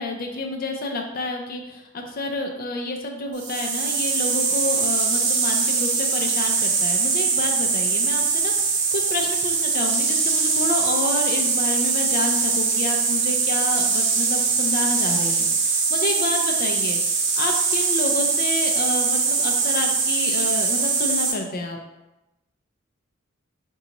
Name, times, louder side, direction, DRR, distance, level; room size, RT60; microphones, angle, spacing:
voice 1, 0.0-21.8, left 2 dB, 45° left, 3 dB, 0.4 m, -29 dB
sound 1, 3.4-21.3, right 5 dB, 55° right, 0.5 m, -22 dB
3.8 x 2.3 x 2.9 m, 0.98 s
head